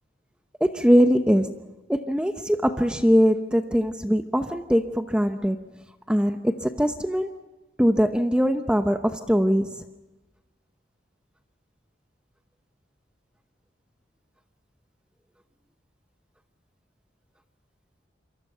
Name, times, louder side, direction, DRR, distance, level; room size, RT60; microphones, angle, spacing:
voice 1, 0.6-1.6 1.9-5.7 6.1-7.4 7.8-9.9, equal, 5° right, 7 dB, 0.8 m, -22 dB
28.5 x 24.0 x 5.7 m, 1.1 s
head